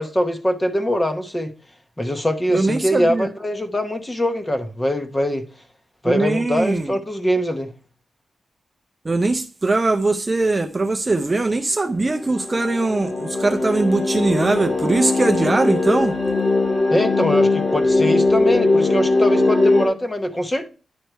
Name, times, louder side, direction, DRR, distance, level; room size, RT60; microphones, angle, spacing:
voice 1, 0.0-1.5 2.0-5.4 6.0-7.7 16.9-20.7, equal, 15° left, 0.9 m, -22 dB
voice 2, 2.5-3.3 6.1-7.0 9.0-16.1, right 2 dB, 20° right, 0.5 m, -21 dB
sound 1, 12.1-19.8, left 2 dB, 30° left, 1.7 m, -20 dB
10.5 x 4.6 x 4.5 m
wide cardioid pair, 180°, 0 cm